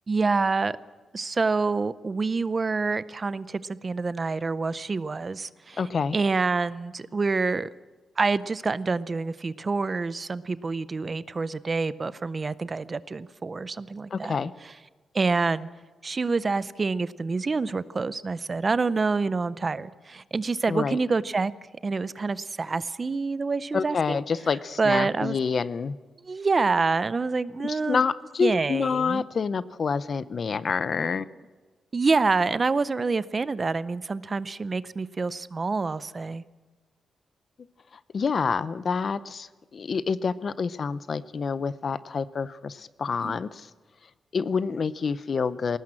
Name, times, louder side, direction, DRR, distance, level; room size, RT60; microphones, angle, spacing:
voice 1, 0.1-0.8 1.1-5.8 6.1-7.7 8.2-14.4 15.1-15.7 16.0-21.5 21.8-24.2 24.8-25.4 26.2-28.0 28.4-29.2 31.9-36.4 43.2-43.4, right 4 dB, 30° right, 16 dB, 0.5 m, -27 dB
voice 2, 5.8-6.2 14.1-14.5 20.7-21.0 23.7-26.0 27.6-31.3 38.1-43.7 44.3-45.8, left 5 dB, 40° left, 16 dB, 0.6 m, -27 dB
21.0 x 18.5 x 7.6 m, 1.3 s
wide cardioid pair, 145°, 0 cm